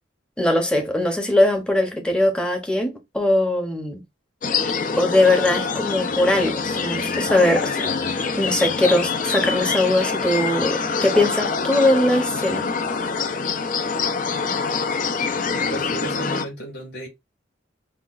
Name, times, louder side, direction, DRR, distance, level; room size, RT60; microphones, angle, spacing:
voice 1, 0.4-4.0 5.0-7.8 8.4-12.7, left 1 dB, 5° left, 0.7 m, -20 dB
sound 1, 4.4-16.5, left 5 dB, 45° left, 0.4 m, -25 dB
voice 2, 15.3-17.1, right 1 dB, 60° left, 2.4 m, -34 dB
5.7 x 2.3 x 2.4 m
head